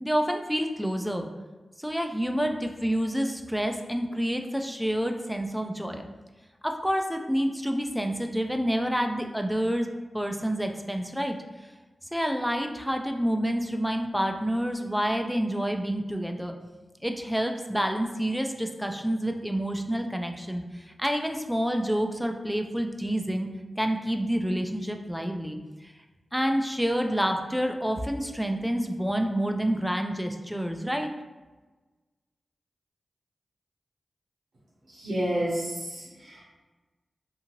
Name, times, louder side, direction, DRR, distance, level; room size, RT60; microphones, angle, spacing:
voice 1, 0.0-1.3 1.8-6.0 6.6-9.9 10.1-11.4 12.1-16.5 17.0-23.5 23.8-25.6 26.3-31.1, equal, ahead, 4 dB, 0.3 m, -28 dB
voice 2, 34.9-36.4, right 1 dB, 75° right, -7 dB, 0.7 m, -30 dB
2.6 x 2.5 x 2.9 m, 1.2 s
cardioid pair, 40°, 0 cm